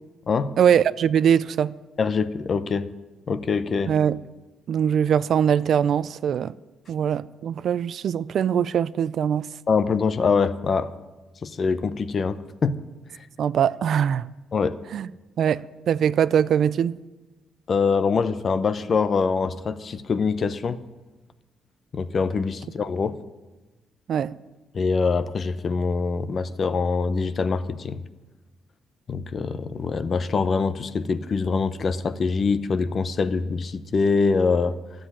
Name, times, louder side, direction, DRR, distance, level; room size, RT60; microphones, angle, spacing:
voice 1, 0.6-1.7 3.9-4.2 4.7-6.5 6.9-9.5 13.4-14.3 14.9-15.1 15.4-17.0 24.1-24.4, right 8 dB, 65° right, 0.4 m, -22 dB
voice 2, 2.0-2.9 3.3-3.9 9.7-10.9 11.4-12.8 14.5-14.8 17.7-20.8 21.9-23.2 24.7-28.0 29.1-34.8, left 4 dB, 45° left, 0.7 m, -24 dB
12.0 x 7.7 x 9.9 m
cardioid pair, 90°, 0 cm